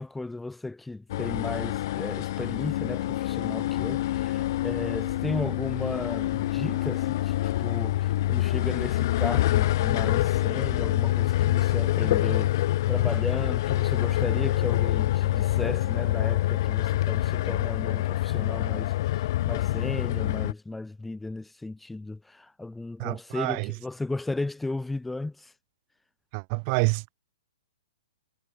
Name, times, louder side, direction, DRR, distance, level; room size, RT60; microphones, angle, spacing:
voice 1, 0.0-25.5, left 2 dB, 5° left, 1.0 m, -35 dB
sound 1, 1.1-20.5, left 14 dB, 40° left, 2.3 m, -26 dB
voice 2, 23.0-23.7 26.3-27.1, right 40 dB or more, 25° right, 1.4 m, -28 dB
hypercardioid pair, 165°, 3 cm